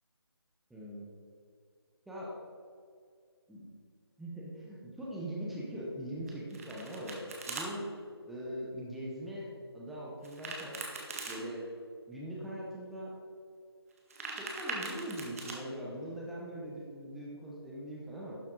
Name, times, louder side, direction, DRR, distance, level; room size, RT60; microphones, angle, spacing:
voice 1, 0.7-1.1 2.1-2.3 3.5-3.7 4.2-7.9 8.3-9.5 9.7-10.8 11.3-11.6 12.1-13.1 14.4-18.4, right 1 dB, ahead, -6 dB, 0.6 m, -41 dB
Domestic sounds home sounds, 6.3-7.7 10.2-11.4 13.9-15.6, right 3 dB, 35° right, 1.6 m, -41 dB
12.0 x 7.2 x 3.7 m, 2.2 s
figure-of-eight pair, 165°, 14 cm